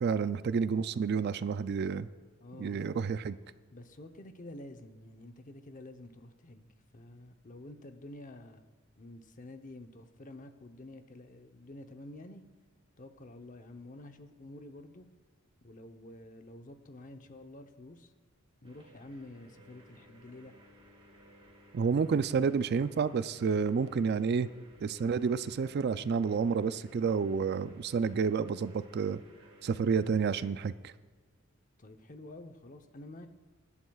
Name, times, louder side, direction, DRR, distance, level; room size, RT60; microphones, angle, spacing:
voice 1, 0.0-2.1 2.6-3.4 21.7-24.5 24.8-29.2 29.6-30.9, right 5 dB, 50° right, 14 dB, 0.3 m, -30 dB
voice 2, 2.4-2.8 3.7-8.7 9.0-12.4 13.0-15.1 15.6-18.1 18.6-20.5 31.8-33.3, left 1 dB, 40° left, 7 dB, 0.8 m, -49 dB
sound 1, 18.6-30.5, equal, 25° right, 1.7 m, -58 dB
22.5 x 11.0 x 2.3 m, 1.4 s
head